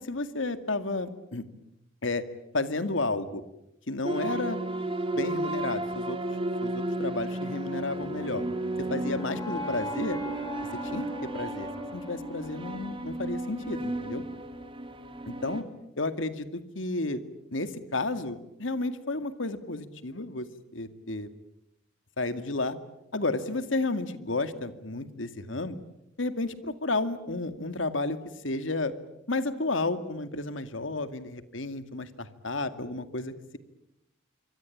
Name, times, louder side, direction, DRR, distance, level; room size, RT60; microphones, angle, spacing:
voice 1, 0.1-1.4 2.0-2.2 2.5-3.4 3.9-4.6 5.1-6.2 6.6-8.4 8.8-10.2 10.9-14.2 15.3-15.6 16.0-17.2 17.5-20.5 20.7-21.3 22.2-22.8 23.1-25.8 26.2-28.2 28.4-28.9 29.3-33.6, left 2 dB, 75° left, 10 dB, 2.2 m, -32 dB
sound 1, 4.0-15.6, right 1 dB, 25° right, 2.6 m, -33 dB
sound 2, 7.8-13.9, left 2 dB, 20° left, 4.3 m, -41 dB
27.0 x 24.5 x 8.6 m, 0.84 s
head